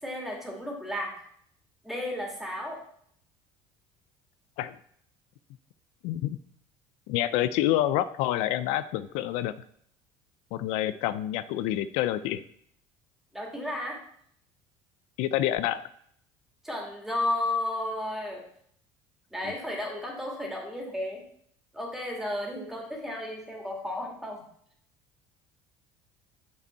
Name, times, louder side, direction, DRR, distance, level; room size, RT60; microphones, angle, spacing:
voice 1, 0.0-1.1 1.8-2.8 13.3-14.0 16.6-18.4 19.3-21.2 21.7-24.4, left 1 dB, 5° right, -2 dB, 2.4 m, -33 dB
voice 2, 6.0-6.4 7.1-9.5 10.5-12.4 15.2-15.8 19.4-19.5, left 13 dB, 75° left, 14 dB, 0.4 m, -27 dB
6.8 x 5.6 x 4.5 m, 0.66 s
cardioid pair, 120°, 11 cm